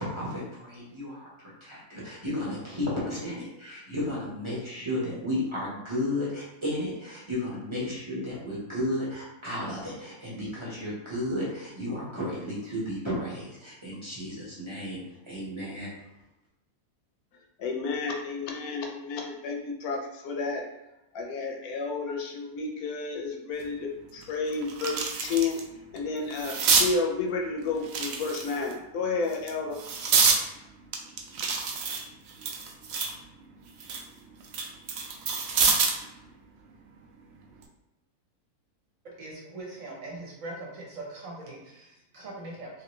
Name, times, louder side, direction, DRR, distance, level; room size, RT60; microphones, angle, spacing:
voice 1, 0.1-15.9, left 1 dB, 25° right, -8 dB, 0.8 m, -33 dB
voice 2, 17.6-20.6 21.1-25.6 25.9-29.8, left 4 dB, 75° left, 1 dB, 1.0 m, -31 dB
sound 1, 23.6-23.7 24.2-25.6 26.0-26.9 27.8-28.7 29.3-30.4 30.9-33.2 33.6-36.0 37.4-37.6, right 5 dB, 80° right, 0.5 m, -27 dB
voice 3, 39.0-42.7, right 2 dB, 60° right, -2 dB, 1.1 m, -41 dB
3.1 x 2.8 x 3.0 m, 0.93 s
omnidirectional pair, 1.7 m